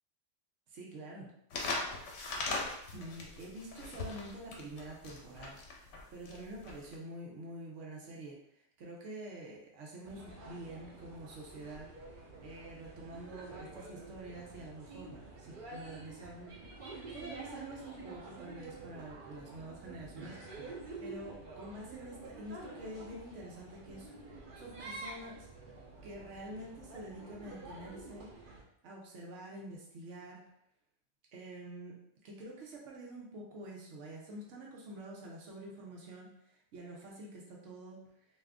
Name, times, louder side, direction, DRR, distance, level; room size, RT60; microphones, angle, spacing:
voice 1, 0.7-1.3 2.9-5.6 5.9-24.1 24.5-25.5 26.0-28.3 28.8-30.4 31.3-32.0 32.2-38.2, right 1 dB, 85° right, -2 dB, 1.0 m, -47 dB
sound 1, 1.5-7.0, left 3 dB, 70° left, 0.9 m, -39 dB
sound 2, 10.0-28.6, right 2 dB, 55° right, 0.7 m, -49 dB
2.6 x 2.4 x 3.4 m, 0.77 s
omnidirectional pair, 1.2 m